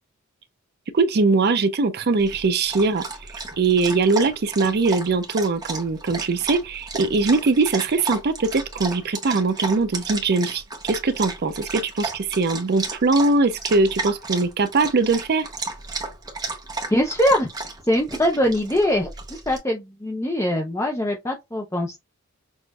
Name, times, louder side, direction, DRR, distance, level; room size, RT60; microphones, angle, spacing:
voice 1, 0.9-15.5, right 3 dB, 45° right, 0.5 m, -21 dB
Dog, 2.2-19.6, right 3 dB, 15° right, 0.8 m, -33 dB
voice 2, 16.9-17.5 17.9-19.1 19.5-22.0, left 1 dB, 15° left, 0.6 m, -22 dB
6.2 x 2.5 x 2.3 m
head